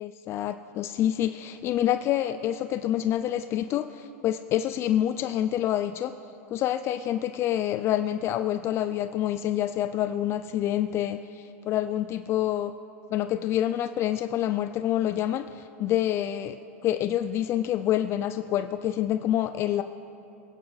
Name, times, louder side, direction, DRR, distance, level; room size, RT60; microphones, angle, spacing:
voice 1, 0.0-6.1 6.5-12.7 13.1-16.6 16.8-19.8, left 11 dB, 30° left, 10 dB, 0.4 m, -27 dB
26.0 x 9.4 x 4.1 m, 2.9 s
supercardioid pair, 135°, 8 cm